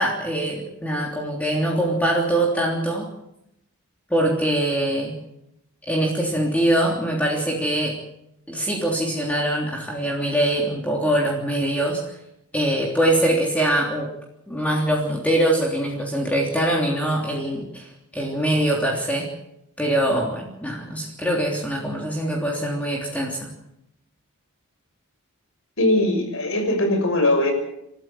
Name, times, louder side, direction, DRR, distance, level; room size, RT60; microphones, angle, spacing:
voice 1, 0.0-3.1 4.1-5.1 5.9-8.0 8.5-12.0 12.5-14.1 14.5-17.9 18.1-19.3 19.8-23.5, right 1 dB, 5° left, -2 dB, 3.3 m, -23 dB
voice 2, 25.8-27.5, left 1 dB, 65° left, 6 dB, 6.4 m, -20 dB
29.5 x 13.5 x 7.6 m, 0.83 s
head